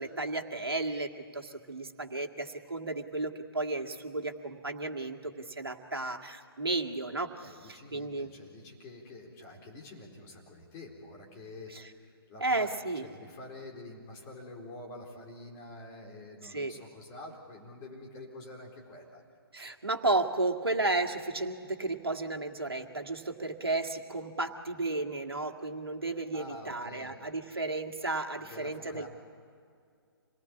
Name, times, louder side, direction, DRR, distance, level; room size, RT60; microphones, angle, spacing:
voice 1, 0.0-8.3 11.7-11.9 12.4-13.1 16.4-16.7 19.5-29.1, right 2 dB, 70° right, 4 dB, 2.0 m, -33 dB
voice 2, 7.4-12.7 13.0-19.2 26.3-27.2 28.4-29.1, left 2 dB, 20° left, -1 dB, 4.1 m, -47 dB
27.0 x 19.0 x 8.6 m, 2.3 s
figure-of-eight pair, 130°, 13 cm